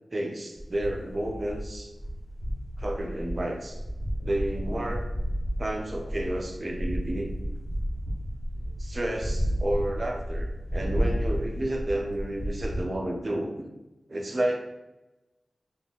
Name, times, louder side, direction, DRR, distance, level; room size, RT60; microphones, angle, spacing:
voice 1, 0.1-1.9 2.8-3.8 4.2-5.1 5.6-7.3 8.8-13.6 14.1-14.6, right 1 dB, 45° right, 2 dB, 0.5 m, -31 dB
sound 1, 0.6-12.8, equal, 25° left, 1.2 m, -32 dB
3.6 x 2.4 x 3.6 m, 1.0 s
cardioid pair, 60°, 0 cm